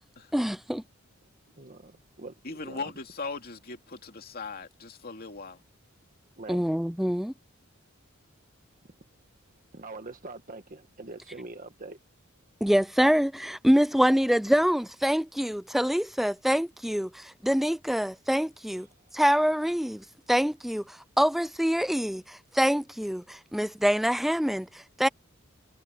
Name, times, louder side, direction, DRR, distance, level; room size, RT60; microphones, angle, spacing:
voice 1, 0.3-0.8 6.5-7.3 12.6-18.9 19.1-25.1, equal, ahead, 0.3 m, -25 dB
voice 2, 1.5-2.9 6.4-6.7 9.7-12.0 18.9-19.0, right 3 dB, 40° right, 1.5 m, -44 dB
voice 3, 2.4-5.6, left 4 dB, 45° left, 2.4 m, -39 dB
head